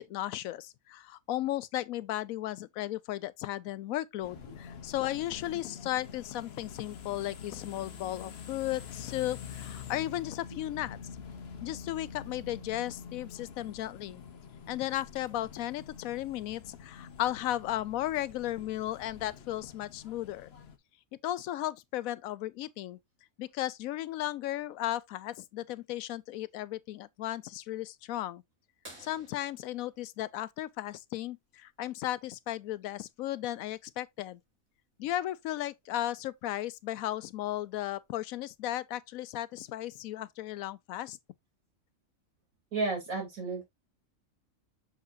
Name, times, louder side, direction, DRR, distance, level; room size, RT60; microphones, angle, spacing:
voice 1, 0.0-11.0 11.6-14.2 14.7-20.5 21.2-23.0 23.4-28.4 29.0-34.4 35.0-41.2, left 14 dB, 85° left, 1.0 m, -35 dB
sound 1, 4.2-20.8, left 7 dB, 55° left, 1.0 m, -46 dB
sound 2, 28.8-31.3 33.2-33.3 35.6-35.7 37.4-37.6 38.4-38.5, right 1 dB, 65° right, 4.2 m, -54 dB
voice 2, 42.7-43.6, right 3 dB, 85° right, 3.5 m, -32 dB
6.5 x 5.8 x 2.6 m
omnidirectional pair, 1.4 m